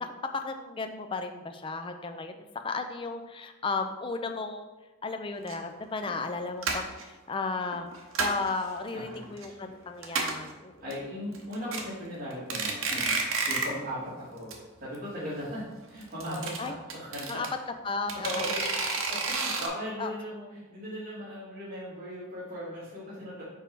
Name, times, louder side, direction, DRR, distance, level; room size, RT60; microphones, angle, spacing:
voice 1, 0.0-4.7 5.0-7.9 8.2-10.9 16.6-16.7 17.3-17.5 17.8-18.3 20.0-20.1, left 3 dB, 25° left, 6 dB, 0.3 m, -34 dB
sound 1, 5.5-5.6 6.1-6.3 6.6-7.0 7.7-8.5 8.9-9.4 9.7-9.8 10.0-10.5 10.9-11.0 11.3-11.8 12.3-13.8 14.1-14.2 14.5-14.6 14.8-14.9 16.0-17.5 18.1-19.7, right 4 dB, 60° right, 0.9 m, -30 dB
voice 2, 8.9-9.6 10.8-14.5 14.8-17.3 18.2-18.6 19.1-23.4, equal, 40° right, -11 dB, 1.9 m, -38 dB
5.0 x 4.5 x 4.6 m, 1.1 s
head